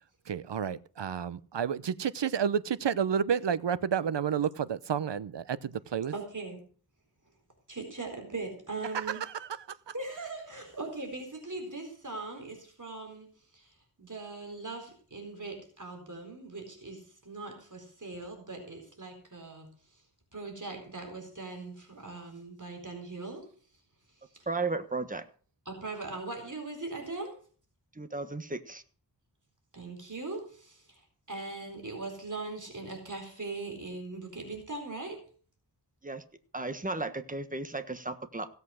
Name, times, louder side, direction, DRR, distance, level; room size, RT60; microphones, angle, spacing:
voice 1, 0.3-6.1 8.9-9.9, right 7 dB, 75° right, 0.8 m, -31 dB
voice 2, 6.1-6.6 7.7-9.3 9.9-20.0 20.3-23.5 24.4-24.5 25.7-27.4 29.7-35.3, right 3 dB, 45° right, 4.2 m, -40 dB
voice 3, 24.5-25.2 27.9-28.8 36.0-36.2 36.5-38.5, right 3 dB, 20° right, 1.4 m, -34 dB
17.0 x 8.2 x 6.4 m
wide cardioid pair, 75°, 42 cm